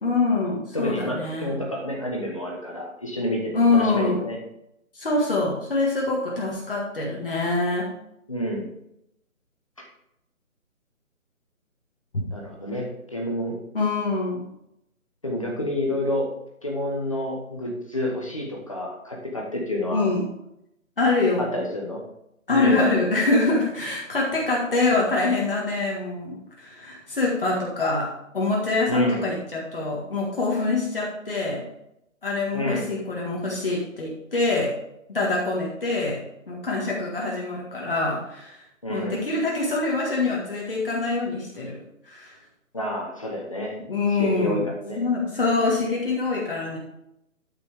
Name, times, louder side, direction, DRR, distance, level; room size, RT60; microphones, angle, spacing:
voice 1, 0.0-1.6 3.5-4.3 4.9-7.9 12.1-12.2 13.7-14.5 19.9-20.3 21.0-21.6 22.5-31.7 32.2-34.7 35.1-42.4 43.9-44.7 45.0-46.8, left 3 dB, 40° left, -3 dB, 1.8 m, -25 dB
voice 2, 0.7-4.4 8.3-8.7 12.3-12.9 13.1-13.6 15.2-16.3 16.6-20.1 21.4-22.0 22.5-22.9 28.9-29.3 32.5-32.9 38.8-39.3 42.7-43.8 44.1-45.0, left 1 dB, 25° left, -1 dB, 1.1 m, -29 dB
12.0 x 5.9 x 3.5 m, 0.80 s
hypercardioid pair, 175°, 42 cm